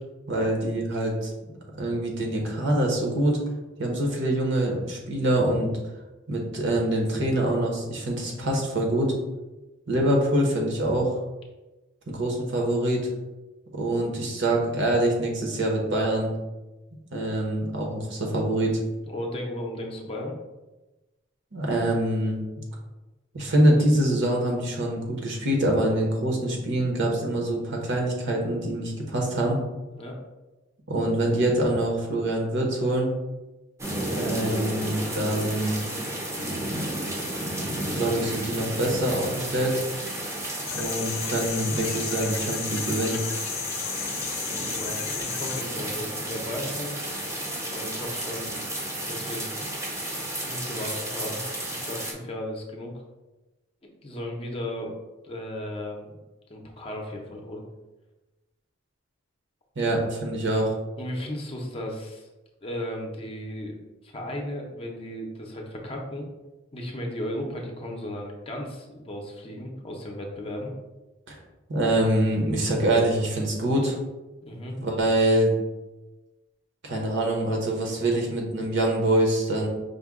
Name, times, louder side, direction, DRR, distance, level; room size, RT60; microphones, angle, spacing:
voice 1, 0.3-3.4 3.8-5.7 6.3-9.1 9.9-11.1 12.1-13.1 13.7-16.3 17.1-18.8 21.5-22.4 23.3-29.6 30.9-33.1 34.1-35.8 38.0-39.8 40.7-43.2 59.8-60.7 71.3-71.4 71.7-73.9 74.8-75.5 76.8-79.7, right 1 dB, 60° right, 0 dB, 0.9 m, -25 dB
voice 2, 19.0-20.3 29.9-30.1 44.8-47.0 47.7-48.6 49.1-49.6 50.4-52.9 54.0-55.0 55.2-56.1 56.5-57.6 61.0-62.3 62.6-63.8 64.0-66.3 66.7-70.7 74.4-74.8, left 1 dB, 30° left, 0 dB, 0.6 m, -35 dB
sound 1, 33.8-52.1, right 1 dB, 15° right, 0.6 m, -32 dB
sound 2, 40.7-45.6, left 10 dB, 75° left, 0.4 m, -34 dB
5.3 x 2.2 x 3.6 m, 1.1 s
head